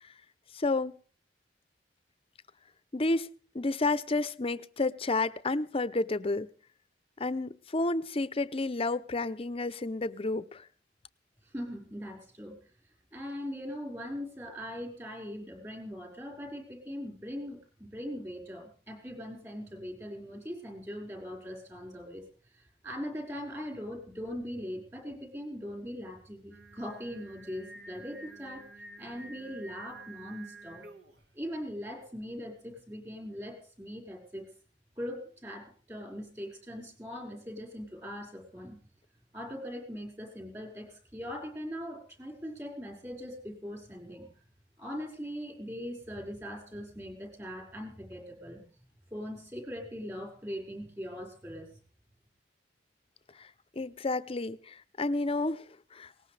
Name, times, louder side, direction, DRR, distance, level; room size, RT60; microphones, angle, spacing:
voice 1, 0.5-1.0 2.9-3.3 3.5-6.5 7.2-10.7 53.4-53.5 53.8-55.6 55.9-56.1, left 2 dB, 35° left, 0.6 m, -30 dB
voice 2, 11.4-12.6 13.1-22.2 22.5-28.6 29.0-30.8 31.4-34.5 35.0-38.8 39.3-44.3 44.8-48.6 49.1-51.7, equal, 15° right, 5.2 m, -41 dB
Singing, 26.5-31.3, right 2 dB, 70° right, 1.7 m, -50 dB
20.5 x 18.5 x 3.3 m
head